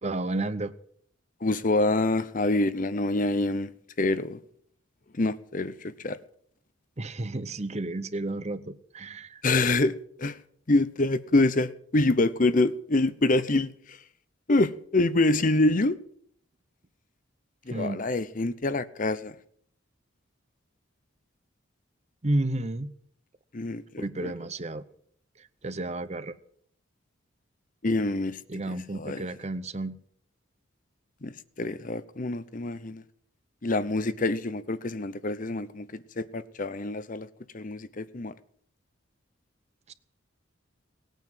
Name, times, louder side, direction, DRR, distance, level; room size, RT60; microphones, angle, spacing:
voice 1, 0.0-0.7 7.0-9.4 17.7-18.0 22.2-22.9 24.0-24.8 25.4-26.3 28.5-30.0 39.9-40.0, right 2 dB, 35° right, 0.8 m, -32 dB
voice 2, 1.4-3.7 4.0-4.4 5.1-6.2 9.4-10.4 10.7-14.0 14.5-16.0 17.7-19.3 23.5-24.3 27.8-28.4 28.9-29.3 31.2-33.0 33.6-37.3 37.5-38.3, left 2 dB, 40° left, 0.8 m, -26 dB
19.0 x 9.1 x 7.6 m
head